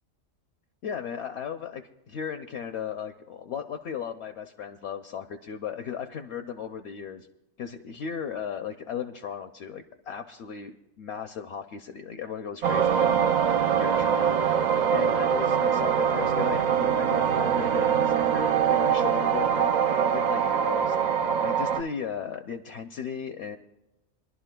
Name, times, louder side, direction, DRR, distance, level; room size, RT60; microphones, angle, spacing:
voice 1, 0.8-7.3 7.6-13.4 13.8-19.7 20.1-23.6, left 7 dB, 65° left, 7 dB, 0.8 m, -36 dB
sound 1, 12.6-21.8, right 8 dB, 70° right, 0.4 m, -23 dB
25.0 x 11.5 x 2.2 m, 0.93 s
omnidirectional pair, 1.3 m